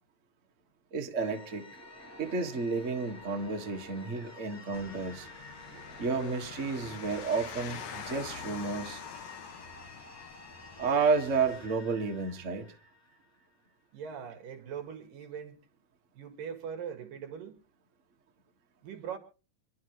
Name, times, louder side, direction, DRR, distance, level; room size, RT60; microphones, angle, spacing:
voice 1, 0.9-1.7 2.2-5.3 6.0-9.0 10.8-12.7, right 4 dB, 40° right, 1.1 m, -31 dB
sound 1, 1.2-13.7, left 2 dB, 5° left, 4.5 m, -51 dB
sound 2, 4.7-11.7, left 6 dB, 60° left, 2.4 m, -45 dB
voice 2, 13.9-15.6 16.1-17.6 18.8-19.2, right 7 dB, 75° right, 3.5 m, -41 dB
26.5 x 11.5 x 3.1 m
omnidirectional pair, 3.9 m